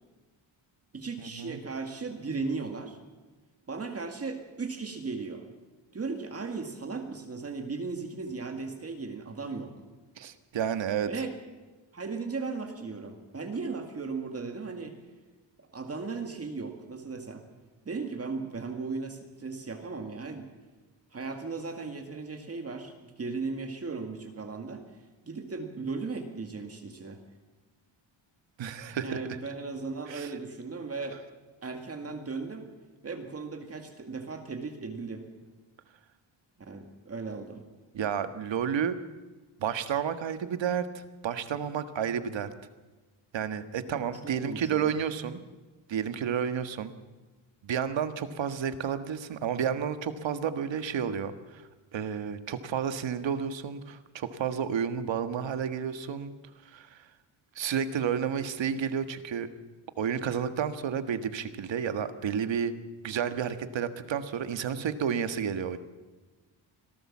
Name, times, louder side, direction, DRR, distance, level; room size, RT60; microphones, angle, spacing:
voice 1, 0.9-3.0 3.7-5.5 5.9-9.7 11.0-11.3 11.9-15.0 15.7-17.5 17.8-20.5 21.1-25.0 25.3-27.2 29.0-31.2 31.6-32.7 33.0-35.2 36.6-37.6 43.9-44.9, right 4 dB, 30° right, 4 dB, 2.1 m, -36 dB
voice 2, 10.2-11.1 28.6-29.2 30.1-30.3 37.9-39.0 39.6-42.5 43.3-45.4 45.9-46.9 47.6-51.6 51.9-56.3 56.6-57.0 57.5-59.5 60.0-62.7 63.0-65.8, right 8 dB, 65° right, 10 dB, 1.6 m, -31 dB
26.0 x 17.5 x 7.3 m, 1.3 s
wide cardioid pair, 180°, 48 cm